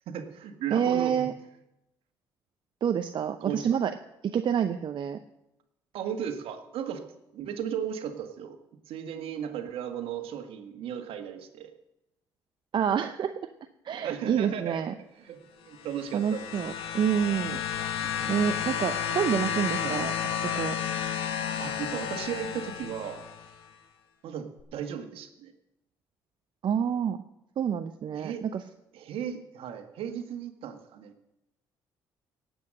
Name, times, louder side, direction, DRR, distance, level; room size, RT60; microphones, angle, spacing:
voice 1, 0.1-1.3 3.4-3.6 5.9-7.0 7.3-8.6 8.9-11.7 14.0-14.8 15.2-16.4 18.0-18.4 19.8-20.0 21.6-23.2 24.2-25.5 28.1-28.4 28.9-31.1, right 8 dB, 70° right, 7 dB, 1.7 m, -36 dB
voice 2, 0.7-1.3 2.8-3.9 4.2-5.2 12.7-13.3 13.8-14.9 16.1-17.6 18.3-20.1 20.5-20.8 26.6-27.2 27.6-28.6, right 8 dB, 55° right, 8 dB, 0.7 m, -27 dB
sound 1, 15.8-23.5 24.6-24.7, left 8 dB, 70° left, 1.7 m, -32 dB
18.0 x 8.1 x 6.5 m, 0.89 s
supercardioid pair, 65°, 10 cm